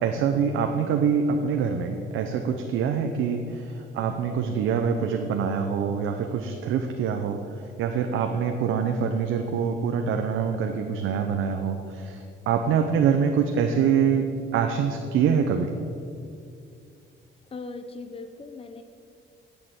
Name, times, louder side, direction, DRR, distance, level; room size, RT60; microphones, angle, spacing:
voice 1, 0.0-15.7, right 6 dB, 85° right, 5 dB, 0.8 m, -25 dB
voice 2, 17.5-18.8, left 3 dB, 30° left, 8 dB, 0.8 m, -39 dB
10.5 x 6.7 x 8.1 m, 2.5 s
cardioid pair, 90°, 20 cm